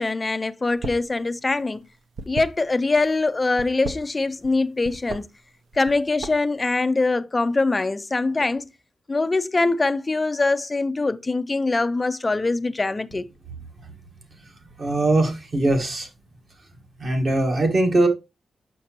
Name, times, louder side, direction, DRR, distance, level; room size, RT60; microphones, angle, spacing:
voice 1, 0.0-1.8 2.3-5.3 5.7-8.7 9.1-13.3, left 3 dB, 20° left, 0.3 m, -23 dB
sound 1, 0.7-1.1 1.4-3.0 3.5-4.5 4.8-5.2 5.7-6.6, right 3 dB, 65° right, 0.8 m, -35 dB
voice 2, 14.8-16.1 17.0-18.1, right 2 dB, 35° right, 1.3 m, -21 dB
6.5 x 5.8 x 2.8 m
wide cardioid pair, 170°, 0 cm